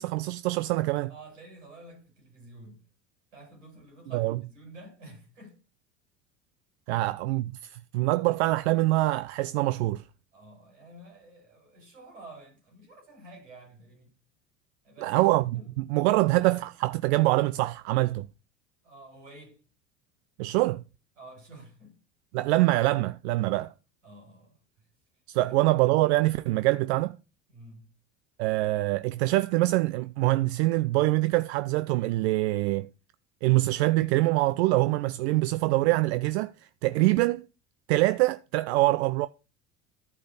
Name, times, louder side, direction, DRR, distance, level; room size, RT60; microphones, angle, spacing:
voice 1, 0.0-1.1 4.1-4.4 6.9-10.0 15.0-15.4 15.8-18.3 20.4-20.8 22.3-23.7 25.3-27.2 28.4-32.9 33.4-37.4 37.9-39.3, right 19 dB, 60° right, 0.5 m, -24 dB
voice 2, 1.1-2.9 3.3-5.6 6.9-7.0 10.3-14.1 14.8-15.7 18.8-19.6 21.2-22.0 23.6-23.7 24.0-24.6 25.4-25.7 27.5-27.9, right 2 dB, 80° right, 5.0 m, -50 dB
13.5 x 5.1 x 3.9 m
hypercardioid pair, 70°, 36 cm